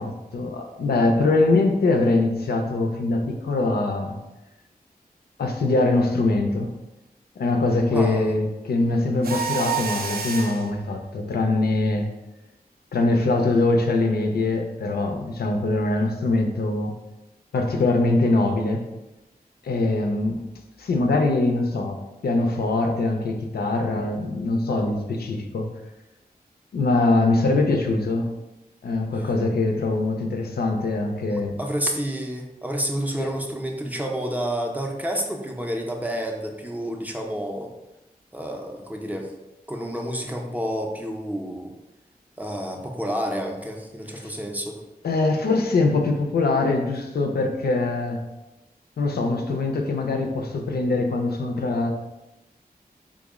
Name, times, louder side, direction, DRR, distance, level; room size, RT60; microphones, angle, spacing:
voice 1, 0.0-4.2 5.4-6.7 7.4-12.1 12.9-16.9 17.5-18.9 19.6-20.4 20.8-25.7 26.7-28.3 28.8-31.6 33.2-33.3 44.1-44.3 45.0-48.3 49.0-51.9, left 2 dB, 90° left, 4 dB, 0.4 m, -23 dB
voice 2, 7.9-8.3 31.3-37.7 38.3-39.3 39.7-41.7 42.4-44.8, equal, 10° right, 1 dB, 0.4 m, -29 dB
Mechanisms, 9.2-10.7, right 6 dB, 75° right, 0.4 m, -28 dB
3.6 x 2.0 x 3.5 m, 0.99 s
wide cardioid pair, 95°, 16 cm